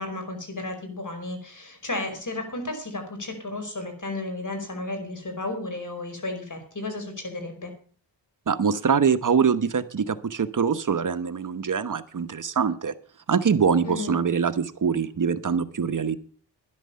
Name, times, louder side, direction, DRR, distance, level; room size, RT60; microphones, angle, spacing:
voice 1, 0.0-7.7 13.8-14.2, left 2 dB, 40° left, 6 dB, 4.9 m, -33 dB
voice 2, 8.5-12.9 13.3-16.2, right 6 dB, 40° right, 11 dB, 1.1 m, -24 dB
12.5 x 10.5 x 5.6 m, 0.43 s
cardioid pair, 60°, 48 cm